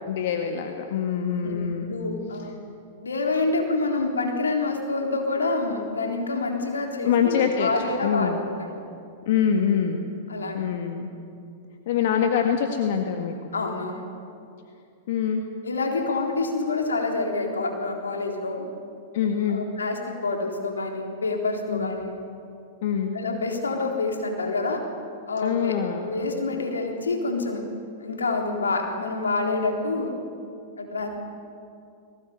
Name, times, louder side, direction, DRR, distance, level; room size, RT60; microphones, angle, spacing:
voice 1, 0.1-1.9 7.0-8.4 9.3-10.1 10.5-11.1 11.9-13.3 15.1-15.4 19.1-19.7 21.7-21.9 22.8-23.1 25.4-26.1, left 8 dB, 60° left, 4 dB, 1.8 m, -25 dB
voice 2, 1.4-2.6 3.0-8.8 10.3-10.7 13.5-14.1 15.6-18.7 19.5-22.2 23.1-24.8 25.3-25.7 26.0-27.6 28.0-30.1 30.8-31.1, left 3 dB, 90° left, 2 dB, 3.8 m, -27 dB
20.5 x 18.0 x 9.6 m, 2.5 s
hypercardioid pair, 110°, 0 cm